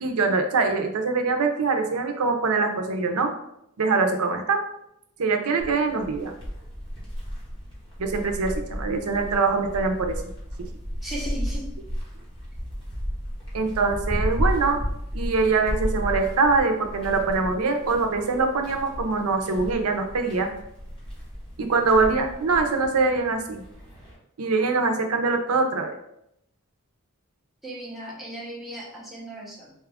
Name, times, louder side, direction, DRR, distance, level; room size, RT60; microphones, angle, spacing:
voice 1, 0.0-3.3 3.8-4.6 5.2-6.3 8.0-10.2 10.6-10.7 13.5-14.8 15.1-20.5 21.6-23.6 24.4-26.0, right 4 dB, 85° right, 5 dB, 0.6 m, -23 dB
sound 1, 5.6-24.1, equal, 25° left, 1.5 m, -33 dB
voice 2, 11.0-11.7 27.6-29.7, right 1 dB, ahead, -6 dB, 0.9 m, -36 dB
4.2 x 2.4 x 3.4 m, 0.77 s
head